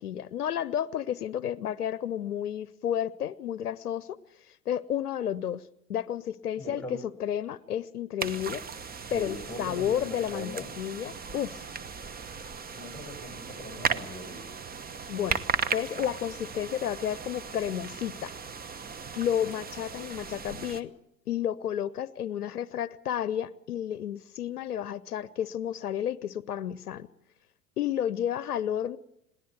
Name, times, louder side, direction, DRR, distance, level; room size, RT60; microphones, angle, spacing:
voice 1, 0.0-4.2 4.7-5.6 5.9-8.6 9.1-11.6 15.1-15.4 15.7-18.3 19.2-20.9 21.3-27.1 27.8-29.0, left 10 dB, 85° left, 20 dB, 0.7 m, -31 dB
voice 2, 6.6-7.0 9.1-10.7 12.7-14.4, equal, 5° left, 4 dB, 7.8 m, -41 dB
sound 1, 8.2-20.8, right 6 dB, 20° right, 1.2 m, -36 dB
21.5 x 16.5 x 8.1 m, 0.79 s
figure-of-eight pair, 80°, 44 cm